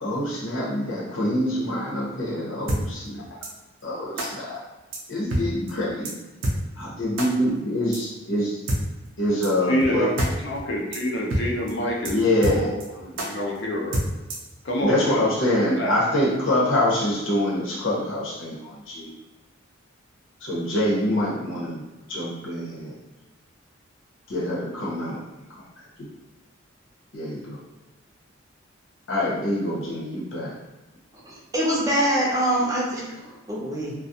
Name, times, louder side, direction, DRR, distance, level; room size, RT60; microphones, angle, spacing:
voice 1, 0.0-3.4 3.8-4.6 5.1-6.1 6.8-8.6 9.2-10.1 12.1-12.7 14.8-19.1 20.4-21.8 22.1-22.9 24.3-25.2 27.1-27.6 29.1-30.5, left 1 dB, 90° left, -5 dB, 0.9 m, -25 dB
sound 1, 2.7-2.8 3.4-3.5 4.2-4.3 4.9-5.0 5.3-5.4 5.7-5.8 6.0-6.1 6.4-6.6 7.2-7.3 7.9-8.0 8.7-8.8 9.4-9.5 9.8-9.9 10.2-10.3 10.6-10.7 10.9-11.0 11.3-11.4 11.7-11.8 12.0-12.1 12.4-12.8 13.2-13.3 13.9-14.5, right 1 dB, 80° right, 0.5 m, -26 dB
voice 2, 9.7-12.2 12.5-12.7 13.0-14.0 14.6-15.3 15.6-16.0, equal, 60° left, -1 dB, 0.5 m, -27 dB
voice 3, 31.2-33.9, right 1 dB, 20° right, -5 dB, 0.5 m, -24 dB
2.3 x 2.2 x 2.7 m, 1.1 s
head